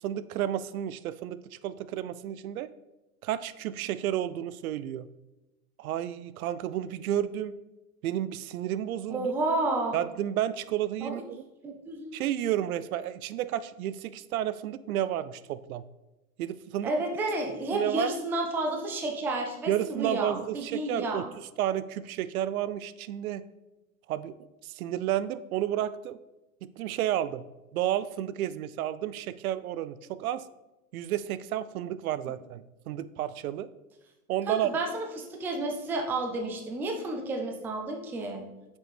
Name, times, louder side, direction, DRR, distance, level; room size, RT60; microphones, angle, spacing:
voice 1, 0.0-2.7 3.2-5.1 5.8-7.6 8.0-9.3 9.9-11.4 12.1-15.8 16.4-16.9 17.7-18.2 19.7-21.3 21.6-23.4 24.1-24.4 24.6-26.2 26.6-27.4 27.7-30.4 30.9-33.7 34.3-34.7, right 11 dB, 70° right, 16 dB, 0.5 m, -31 dB
voice 2, 9.1-10.0 11.0-11.1 11.6-12.2 16.8-21.3 34.5-38.4, right 2 dB, 5° right, 3 dB, 0.3 m, -31 dB
7.8 x 5.2 x 3.4 m, 1.0 s
hypercardioid pair, 110°, 45 cm